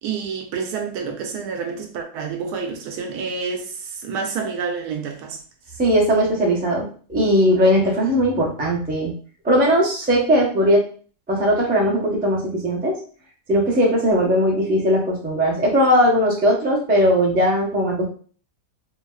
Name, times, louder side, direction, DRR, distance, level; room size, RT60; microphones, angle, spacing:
voice 1, 0.0-5.4, right 5 dB, 75° right, 1.1 m, -28 dB
voice 2, 5.8-9.1 9.4-10.8 11.3-13.0 13.5-18.0, equal, 10° right, 0.4 m, -19 dB
3.9 x 2.2 x 2.3 m
omnidirectional pair, 1.7 m